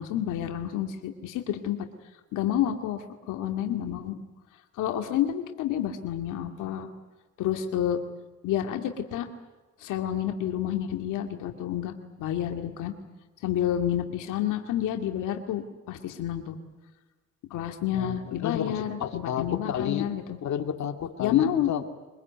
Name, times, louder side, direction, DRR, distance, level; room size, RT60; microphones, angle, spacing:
voice 1, 0.0-1.9 2.3-4.2 4.8-6.9 7.4-8.0 8.4-9.3 9.8-12.9 13.4-16.6 17.5-20.4 21.2-21.7, left 11 dB, 90° left, 5 dB, 2.3 m, -29 dB
voice 2, 17.9-20.1 20.4-21.9, left 9 dB, 65° left, 5 dB, 2.3 m, -31 dB
24.5 x 21.5 x 9.4 m, 1.2 s
cardioid pair, 90°, 30 cm